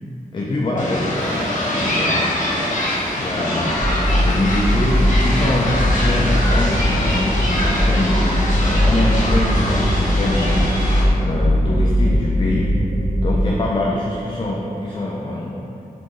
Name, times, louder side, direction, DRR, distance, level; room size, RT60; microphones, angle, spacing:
voice 1, 0.3-1.6 1.9-2.4 3.2-3.8 4.2-8.2 8.7-10.7 11.2-12.7 13.2-15.6, left 1 dB, 30° left, -3 dB, 0.4 m, -24 dB
sound 1, 0.8-11.0, left 1 dB, 55° left, 0.9 m, -23 dB
sound 2, 3.8-13.5, equal, 50° right, 0.7 m, -19 dB
4.2 x 3.8 x 3.1 m, 2.9 s
wide cardioid pair, 130°, 16 cm